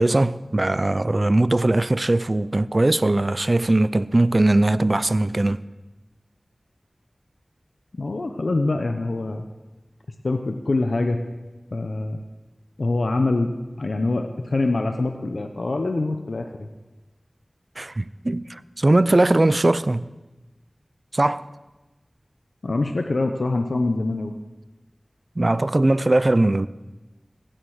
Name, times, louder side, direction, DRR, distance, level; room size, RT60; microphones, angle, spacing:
voice 1, 0.0-5.6 17.8-20.1 21.1-21.5 25.4-26.7, right 2 dB, 50° right, 0.4 m, -20 dB
voice 2, 7.9-9.4 10.2-11.2 11.7-12.2 12.8-13.5 13.8-16.7 22.6-24.3, left 2 dB, 85° left, 0.7 m, -24 dB
16.0 x 8.0 x 6.4 m
wide cardioid pair, 40°, 0 cm